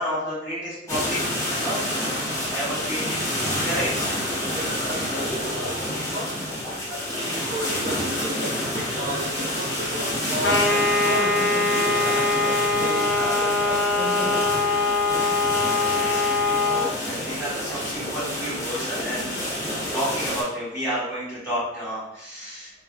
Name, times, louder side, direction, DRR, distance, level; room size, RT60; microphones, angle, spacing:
voice 1, 0.0-3.2 3.6-3.9 16.0-19.5 19.9-22.7, equal, 5° right, -10 dB, 1.4 m, -31 dB
sound 1, 0.9-20.4, left 1 dB, 15° left, 0.8 m, -28 dB
voice 2, 3.2-6.3 6.9-10.6 11.0-12.3 12.8-14.5 15.1-15.8, equal, 45° right, -1 dB, 0.6 m, -34 dB
sound 2, 10.4-16.9, left 3 dB, 60° left, 0.5 m, -22 dB
3.2 x 2.7 x 2.3 m, 0.92 s
head